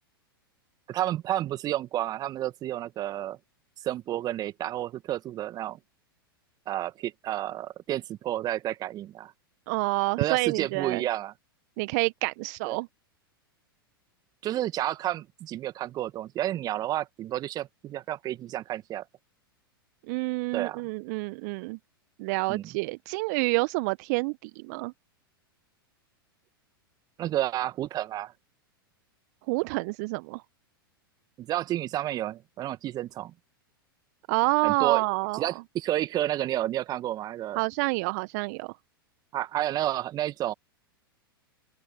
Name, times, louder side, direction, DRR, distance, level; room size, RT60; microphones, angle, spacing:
voice 1, 0.9-3.4 3.8-5.8 6.7-9.3 10.2-11.3 12.7-12.8 14.4-19.0 20.5-20.8 22.5-22.6 27.2-28.3 31.4-33.3 34.6-35.0 35.3-37.6 39.3-40.5, right 13 dB, 30° right, 1.9 m, -30 dB
voice 2, 9.7-11.0 11.8-12.9 20.1-21.8 22.2-24.9 29.5-30.4 34.3-35.5 37.5-38.7, right 28 dB, 50° right, 1.4 m, -28 dB
open air
figure-of-eight pair, 95°, 12 cm